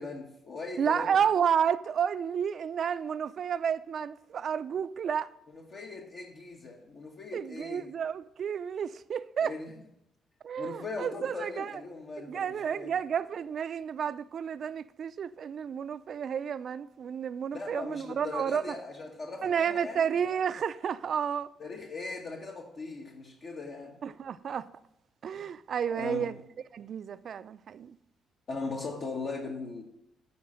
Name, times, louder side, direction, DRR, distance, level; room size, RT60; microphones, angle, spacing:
voice 1, 0.0-1.1 5.5-7.9 9.4-9.7 10.6-12.9 17.5-20.1 21.6-24.0 25.4-25.5 25.9-26.3 28.5-29.8, left 3 dB, 50° left, 1.2 m, -39 dB
voice 2, 0.8-5.3 7.3-9.6 10.4-11.8 12.2-18.8 19.4-21.5 24.0-24.7 25.2-26.4 26.7-28.0, right 7 dB, 55° right, 0.4 m, -31 dB
10.5 x 4.3 x 6.3 m
cardioid pair, 90°, 0 cm